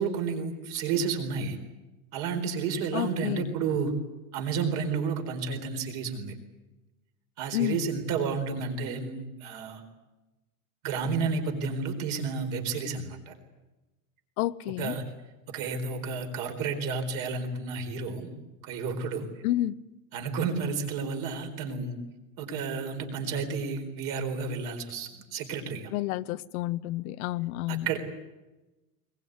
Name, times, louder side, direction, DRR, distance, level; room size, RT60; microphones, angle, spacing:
voice 1, 0.0-1.6 2.1-3.9 4.3-6.3 7.4-9.8 10.8-13.3 14.8-15.0 15.5-18.3 18.6-19.3 20.1-21.9 22.4-25.9 27.7-28.0, right 5 dB, 45° right, 5 dB, 4.4 m, -31 dB
voice 2, 2.9-3.5 7.5-7.8 14.4-14.9 19.4-19.8 25.9-27.9, left 15 dB, 70° left, 15 dB, 0.9 m, -30 dB
22.0 x 21.0 x 9.4 m, 1.1 s
supercardioid pair, 180°, 44 cm